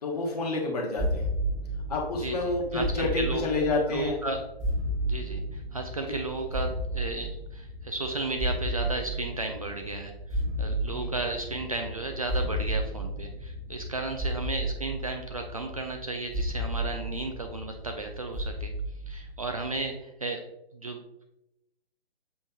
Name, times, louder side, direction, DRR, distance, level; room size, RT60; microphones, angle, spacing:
voice 1, 0.0-1.3 1.9-4.2 6.1-6.2 10.9-11.1, left 2 dB, 40° left, -1 dB, 1.2 m, -29 dB
sound 1, 1.0-19.9, equal, 20° right, 1.2 m, -33 dB
voice 2, 2.2-3.4 3.9-4.4 5.0-5.4 5.7-10.1 10.6-18.7 19.1-20.4 20.7-21.0, right 3 dB, 35° right, 3 dB, 0.4 m, -34 dB
6.9 x 3.2 x 2.3 m, 0.86 s
figure-of-eight pair, 135°, 31 cm